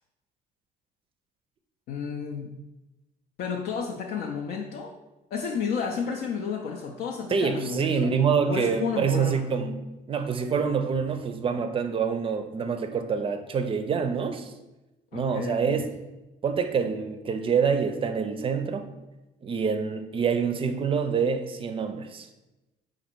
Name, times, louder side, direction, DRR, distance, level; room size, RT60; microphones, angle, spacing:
voice 1, 1.9-2.6 3.4-4.9 5.3-8.1 8.4-9.5 15.1-15.9, left 6 dB, 70° left, 0 dB, 0.5 m, -32 dB
voice 2, 7.3-9.8 10.1-14.5 15.1-15.8 16.4-18.9 19.4-22.3, right 6 dB, 30° right, 8 dB, 0.4 m, -26 dB
4.0 x 2.5 x 4.4 m, 1.0 s
cardioid pair, 110°, 17 cm